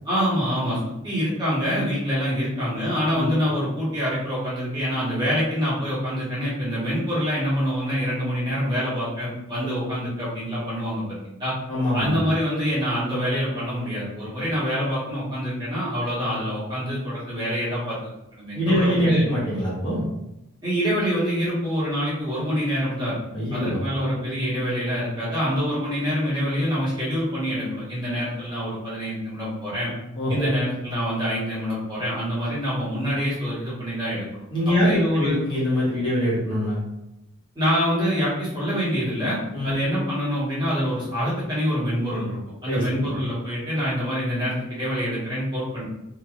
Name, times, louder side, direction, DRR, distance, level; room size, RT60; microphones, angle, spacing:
voice 1, 0.0-11.5 11.9-19.3 20.6-23.2 23.5-29.9 30.3-35.4 37.5-45.8, equal, 20° right, -9 dB, 1.1 m, -26 dB
voice 2, 11.7-12.2 18.5-20.0 23.3-24.1 30.2-30.5 34.5-36.8 39.5-39.7 42.7-43.1, equal, 25° left, -8 dB, 0.9 m, -23 dB
3.0 x 2.4 x 2.4 m, 0.87 s
head